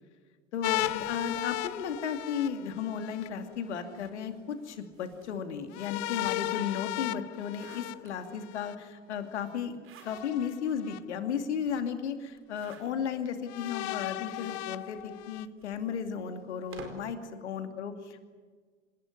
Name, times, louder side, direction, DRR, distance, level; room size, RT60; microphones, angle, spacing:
voice 1, 0.5-9.7 10.0-18.2, left 7 dB, 65° left, 7 dB, 2.6 m, -34 dB
sound 1, 0.6-3.3 5.7-8.7 10.0-11.0 11.7-11.8 13.5-15.5, left 19 dB, 45° left, 0.9 m, -35 dB
sound 2, 0.8-2.4 3.3-6.7 7.1-8.6 9.6-10.5 11.0-11.1 11.3-11.4 12.3-13.3 14.0-17.2, right 4 dB, 35° right, 4.7 m, -53 dB
27.0 x 19.5 x 9.8 m, 1.5 s
figure-of-eight pair, 75°, 37 cm